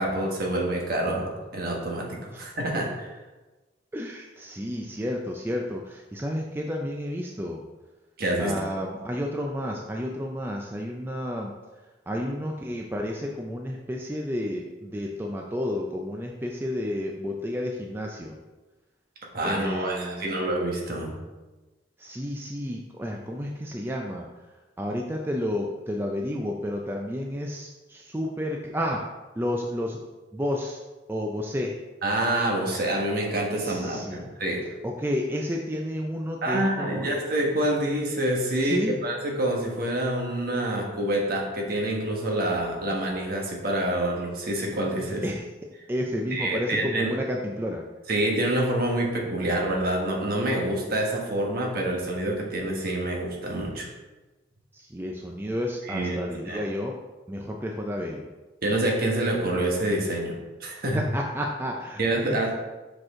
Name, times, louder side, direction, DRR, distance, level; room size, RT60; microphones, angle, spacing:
voice 1, 0.0-3.1 8.2-8.5 19.3-21.1 32.0-34.6 36.4-45.2 46.3-47.1 48.1-53.9 55.8-56.6 58.6-60.3 60.6-61.0 62.0-62.5, right 1 dB, 50° right, -1 dB, 1.3 m, -27 dB
voice 2, 3.9-7.6 8.4-11.5 12.1-18.3 19.4-20.3 22.0-24.3 24.8-29.0 29.4-30.0 30.3-30.8 31.1-31.7 33.6-34.2 34.8-37.1 38.6-39.0 45.2-45.4 45.9-47.8 54.7-56.9 57.3-58.2 60.9-62.0, equal, 10° right, 0 dB, 0.4 m, -31 dB
6.0 x 5.2 x 3.6 m, 1.2 s
head